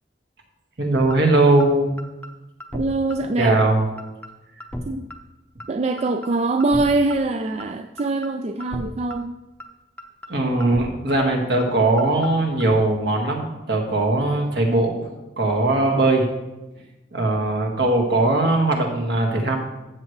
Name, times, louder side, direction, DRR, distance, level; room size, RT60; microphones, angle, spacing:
voice 1, 0.8-1.9 3.4-3.8 10.3-15.0 15.4-16.3 17.1-19.6, right 2 dB, 65° right, 1 dB, 1.8 m, -20 dB
sound 1, 1.1-1.2 1.6-1.7 2.0-2.3 2.6-2.8 3.1-3.2 3.6-3.7 4.0-4.3 4.6-4.8 5.1-5.2 5.6-5.7 6.0-6.3 6.6-6.8 7.1-7.2 7.6-7.7 8.0-8.3 8.6-8.8 9.1-9.2 9.6-9.7 10.0-10.3 10.6-10.8 11.1-11.2 11.6-11.7 12.0-12.3 12.6-12.8, left 1 dB, 10° left, 0.7 m, -33 dB
voice 2, 2.7-3.6 4.9-5.1 5.7-9.4, right 2 dB, 35° right, 7 dB, 0.4 m, -23 dB
13.0 x 7.9 x 3.2 m, 1.0 s
head